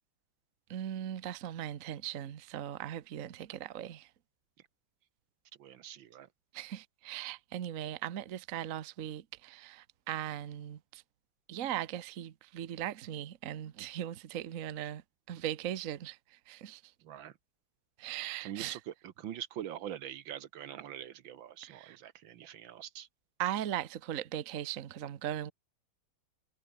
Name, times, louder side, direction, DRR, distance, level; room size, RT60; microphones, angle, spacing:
voice 1, 0.7-4.1 6.5-11.0 11.5-15.0 15.3-16.8 18.0-18.8 21.6-22.0 23.4-25.5, right 11 dB, 50° right, 1.1 m, -39 dB
voice 2, 5.6-6.3 17.0-17.3 18.4-23.1, right 11 dB, 70° right, 1.7 m, -44 dB
omnidirectional pair, 2.3 m